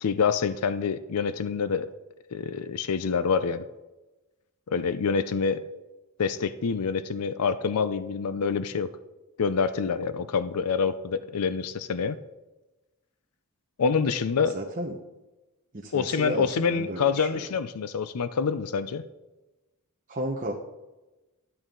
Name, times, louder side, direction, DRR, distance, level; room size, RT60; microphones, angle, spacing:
voice 1, 0.0-1.9 2.3-3.7 4.7-5.6 6.2-8.9 9.4-12.2 13.8-14.6 15.9-19.1, left 5 dB, 85° left, 13 dB, 0.5 m, -26 dB
voice 2, 14.5-15.0 15.7-17.5 20.1-20.5, right 1 dB, 35° right, -2 dB, 1.0 m, -33 dB
12.5 x 8.7 x 3.8 m, 1.1 s
head